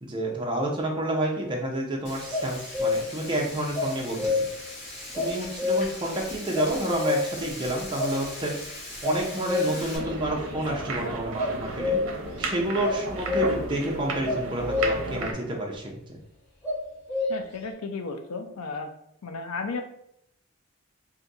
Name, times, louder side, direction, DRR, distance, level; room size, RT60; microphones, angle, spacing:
voice 1, 0.0-4.4 5.1-8.5 9.0-12.0 12.4-16.2, right 1 dB, 20° right, -1 dB, 0.5 m, -29 dB
Frying (food), 2.0-10.0, left 1 dB, 30° left, 1.0 m, -40 dB
sound 1, 2.3-3.2 3.7-4.7 5.1-6.2 6.5-7.5 8.0-8.1 9.0-10.1 11.4-12.3 12.8-13.8 14.2-15.2 16.6-17.6, left 3 dB, 10° left, 1.2 m, -28 dB
sound 2, 9.9-15.3, right 2 dB, 65° right, 0.7 m, -33 dB
voice 2, 17.3-18.9 19.2-19.8, left 4 dB, 85° left, 6 dB, 0.5 m, -33 dB
2.6 x 2.5 x 3.9 m, 0.72 s
head